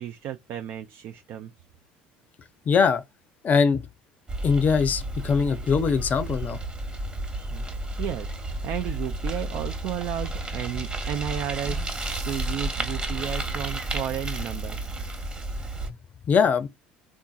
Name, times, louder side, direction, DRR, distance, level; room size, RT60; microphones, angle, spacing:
voice 1, 0.0-1.5 7.5-7.7 8.0-14.9, right 10 dB, 55° right, 0.4 m, -33 dB
voice 2, 2.7-3.0 3.4-3.8 4.4-6.6 16.3-16.7, left 5 dB, 40° left, 0.6 m, -21 dB
Bicycle, 4.3-15.9, right 1 dB, 25° right, 1.0 m, -32 dB
3.6 x 2.7 x 2.3 m
hypercardioid pair, 70°, 4 cm